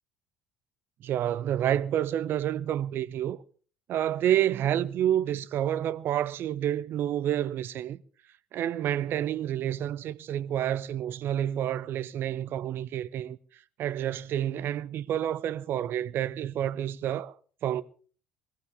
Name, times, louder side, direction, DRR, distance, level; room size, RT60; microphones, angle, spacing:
voice 1, 1.0-3.4 3.9-8.0 8.5-13.4 13.8-17.4 17.6-17.8, right 11 dB, 50° right, 0.8 m, -29 dB
21.0 x 15.5 x 3.5 m
figure-of-eight pair, 55°, 5 cm